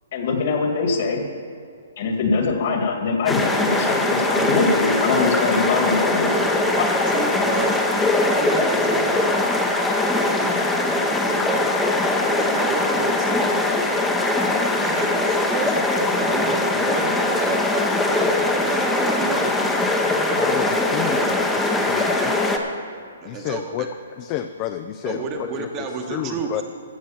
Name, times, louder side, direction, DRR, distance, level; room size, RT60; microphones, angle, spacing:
voice 1, 0.1-1.2 2.0-6.3 6.8-6.9, left 4 dB, 50° left, 3 dB, 1.9 m, -22 dB
sound 1, 3.3-22.6, left 2 dB, 5° left, 0.8 m, -21 dB
voice 2, 6.2-9.5 10.1-11.8 12.4-13.5 14.8-15.7 16.2-20.9 21.8-22.6 23.2-23.9 25.0-26.6, right 5 dB, 25° right, 3 dB, 1.1 m, -32 dB
voice 3, 20.4-22.3 23.2-23.9 24.2-26.6, left 12 dB, 25° left, 9 dB, 0.4 m, -31 dB
14.5 x 6.2 x 7.1 m, 2.2 s
hypercardioid pair, 160°, 0 cm